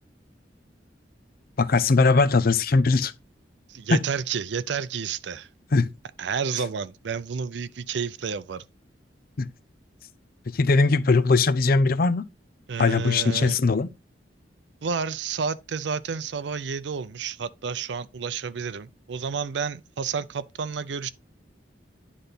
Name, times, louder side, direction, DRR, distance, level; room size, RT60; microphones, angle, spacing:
voice 1, 1.6-3.1 3.9-4.0 5.7-5.9 9.4-9.5 10.5-12.2 12.8-13.9, left 3 dB, 55° left, 0.5 m, -20 dB
voice 2, 3.7-5.5 6.2-8.6 12.7-13.6 14.8-21.1, right 6 dB, 70° right, 0.5 m, -30 dB
10.0 x 4.0 x 3.9 m
head